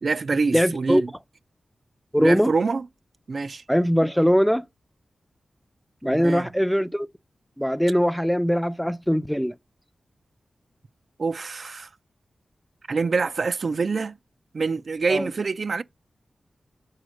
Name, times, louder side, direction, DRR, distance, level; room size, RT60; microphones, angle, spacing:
voice 1, 0.0-1.1 2.2-2.9 3.3-3.6 6.0-6.5 11.2-11.9 12.9-14.1 14.5-15.8, right 4 dB, 60° right, 0.4 m, -25 dB
voice 2, 0.5-1.0 2.1-2.5 3.7-4.6 6.0-7.1 7.6-9.5 15.1-15.3, equal, ahead, 0.5 m, -21 dB
6.4 x 4.2 x 6.3 m
cardioid pair, 65°, 0 cm